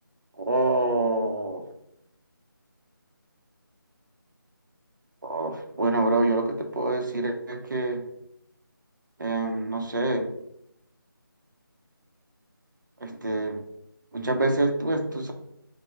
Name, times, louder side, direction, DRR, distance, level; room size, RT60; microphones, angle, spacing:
voice 1, 0.4-1.6 5.2-8.0 9.2-10.3 13.0-13.6 14.1-15.3, right 2 dB, 60° right, 4 dB, 0.7 m, -26 dB
5.9 x 2.2 x 3.1 m, 0.76 s
figure-of-eight pair, 175°, 12 cm